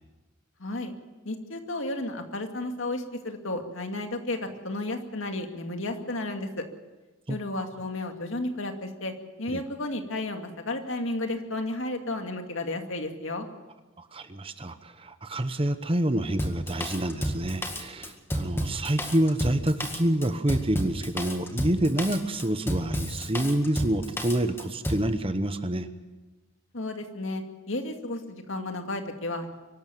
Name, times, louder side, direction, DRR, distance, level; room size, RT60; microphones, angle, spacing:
voice 1, 0.6-0.9 1.3-6.7 7.3-9.1 9.4-13.5 26.7-29.6, left 2 dB, 65° left, 5 dB, 2.3 m, -33 dB
voice 2, 14.0-25.9, right 1 dB, 25° right, 10 dB, 1.0 m, -27 dB
Drum kit, 16.4-25.1, equal, 10° left, 1.9 m, -31 dB
24.0 x 12.5 x 9.0 m, 1.2 s
head